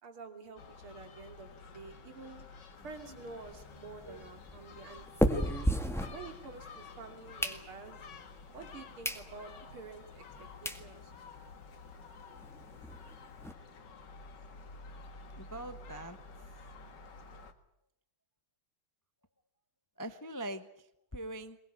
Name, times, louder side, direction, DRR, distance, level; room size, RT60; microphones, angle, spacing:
voice 1, 0.0-2.4 2.8-5.1 6.1-8.2 8.5-11.1, right 4 dB, 85° right, 5 dB, 3.7 m, -49 dB
Gull seagull, 0.6-17.5, left 4 dB, 55° left, 2.2 m, -51 dB
sound 1, 2.8-6.8 7.1-8.1 8.6-8.7 9.0-9.3 9.7-9.8 10.4-10.5 10.7-10.9 11.3-11.4 11.5-11.7 12.0-12.1 12.4-13.5, equal, ahead, 1.5 m, -34 dB
voice 2, 15.4-16.2 20.0-21.6, right 1 dB, 20° left, 10 dB, 0.5 m, -43 dB
22.0 x 20.0 x 9.6 m, 0.77 s
omnidirectional pair, 2.3 m